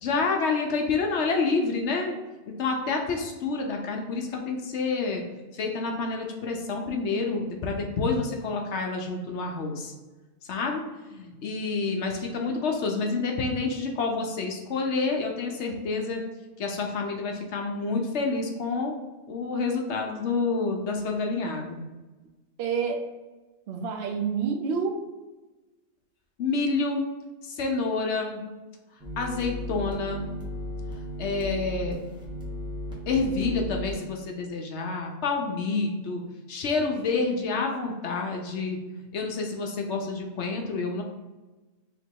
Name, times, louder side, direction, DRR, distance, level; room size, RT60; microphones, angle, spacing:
voice 1, 0.0-2.2 2.6-5.2 5.5-9.9 10.5-16.2 16.6-19.0 19.3-21.8 26.4-27.1 27.4-28.4 29.2-30.3 30.9-32.0 33.1-36.2 36.5-41.0, left 4 dB, 65° left, 1 dB, 0.9 m, -28 dB
voice 2, 22.6-23.0 23.7-25.0, right 6 dB, 60° right, 4 dB, 0.7 m, -28 dB
sound 1, 29.0-34.0, left 1 dB, 5° right, 0.7 m, -35 dB
2.9 x 2.9 x 4.5 m, 1.2 s
omnidirectional pair, 1.3 m